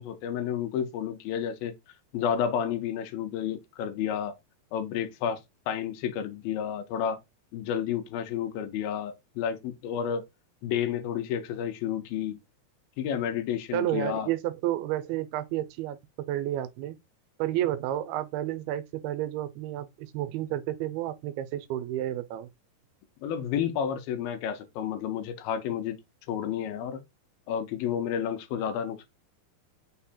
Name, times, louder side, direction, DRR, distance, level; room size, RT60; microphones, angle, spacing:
voice 1, 0.0-1.7 2.1-4.4 4.7-5.4 5.7-7.2 7.5-10.3 10.6-12.4 13.0-14.3 23.2-26.0 26.3-27.0 27.5-29.1, left 8 dB, 80° left, 2.4 m, -31 dB
voice 2, 13.7-17.0 17.4-22.5, right 13 dB, 90° right, 2.4 m, -31 dB
5.9 x 2.1 x 4.1 m
omnidirectional pair, 4.2 m